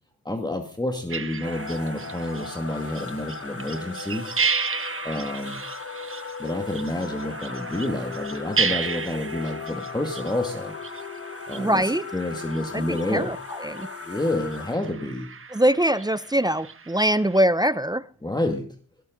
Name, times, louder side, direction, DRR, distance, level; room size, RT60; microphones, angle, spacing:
voice 1, 0.2-4.3 5.0-5.6 6.4-10.7 11.5-13.3 14.0-15.3 18.2-18.7, left 1 dB, 10° left, 2.2 m, -29 dB
sound 1, 1.1-17.4, right 5 dB, 30° right, 1.4 m, -34 dB
sound 2, 1.4-14.8, left 5 dB, 35° left, 1.5 m, -37 dB
voice 2, 11.6-12.0 12.7-13.4 13.6-13.9 15.5-18.0, right 1 dB, 10° right, 0.6 m, -22 dB
17.5 x 12.5 x 4.0 m
supercardioid pair, 55°, 39 cm